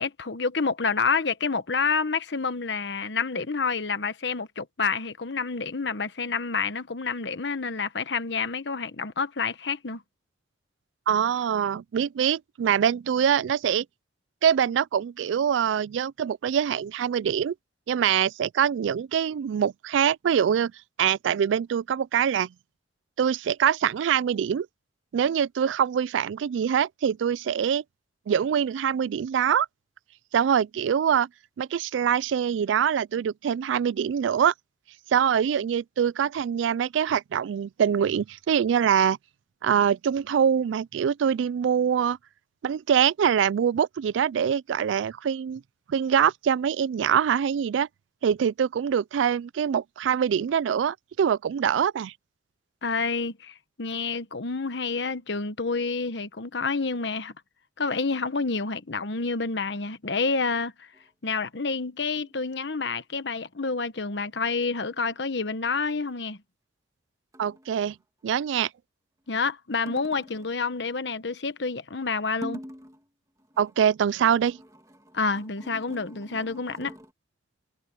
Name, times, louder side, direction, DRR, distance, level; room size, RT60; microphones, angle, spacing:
voice 1, 0.0-10.0 52.8-57.3 57.8-60.9 61.2-66.4 69.3-72.6 75.1-76.9, left 4 dB, 75° left, 1.1 m, -28 dB
voice 2, 11.1-13.9 14.4-17.5 17.9-20.7 21.0-22.5 23.2-24.7 25.1-27.8 28.3-29.7 30.3-31.3 31.6-34.5 35.1-39.2 39.6-42.2 42.6-45.6 45.9-47.9 48.2-52.1 67.4-68.0 68.2-68.7 73.6-74.6, right 8 dB, 90° right, 0.3 m, -24 dB
sound 1, 60.9-61.1 62.2-62.5 64.6-64.8 65.0-65.1 67.3-67.8 69.9-70.6 72.3-73.1 73.4-77.1, equal, 20° right, 2.6 m, -45 dB
head